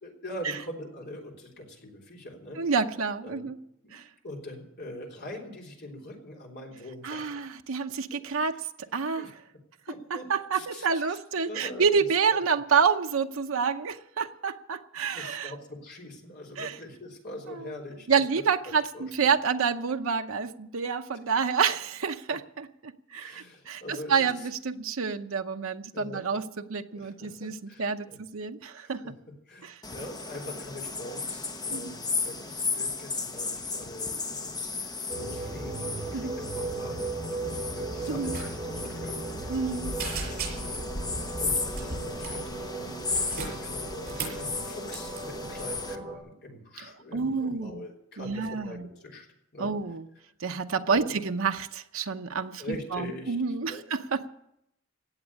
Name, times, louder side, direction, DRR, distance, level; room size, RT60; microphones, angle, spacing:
voice 1, 0.0-2.6 3.2-3.5 3.8-4.0 4.2-7.4 8.2-8.6 9.2-9.3 9.9-10.2 10.5-11.2 11.5-12.4 12.7-12.8 15.1-18.2 18.6-19.3 23.2-24.5 25.9-26.4 27.0-28.2 28.7-29.1 29.5-40.2 41.4-49.3 49.5-49.7 50.9-51.2 52.6-53.4 53.7-53.8, left 1 dB, 55° left, 0 dB, 3.5 m, -43 dB
voice 2, 2.6-3.6 3.9-4.0 7.0-8.6 8.9-9.3 10.1-15.5 16.6-16.7 17.5-17.7 18.1-27.5 27.8-29.0 29.6-29.7 31.7-31.9 36.1-36.4 38.1-38.3 39.5-39.9 47.1-47.8 48.2-48.9 49.6-50.0 50.4-54.3, right 5 dB, 75° right, 6 dB, 0.7 m, -28 dB
sound 1, 29.8-46.0, left 4 dB, 20° left, 1.0 m, -35 dB
sound 2, 35.1-46.2, right 2 dB, 15° right, 4.4 m, -37 dB
sound 3, 38.3-38.5 38.7-38.9 39.3-39.7 40.0-40.9 41.7-42.4 43.0-44.4 44.9-45.2, right 4 dB, 50° right, 6.5 m, -36 dB
17.0 x 7.2 x 9.7 m, 0.78 s
head